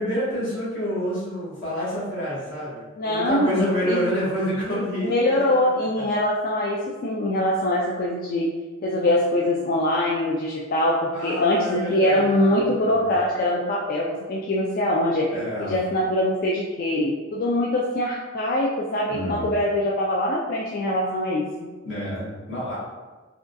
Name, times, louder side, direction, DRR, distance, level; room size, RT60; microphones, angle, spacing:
voice 1, 0.0-5.5 11.1-13.1 15.3-15.7 19.1-19.6 21.8-22.8, equal, 75° left, -8 dB, 1.3 m, -28 dB
voice 2, 3.0-4.0 4.7-4.8 5.0-8.5 8.8-15.3 15.6-21.7, left 1 dB, 45° left, -4 dB, 0.3 m, -23 dB
3.4 x 2.3 x 2.5 m, 1.3 s
head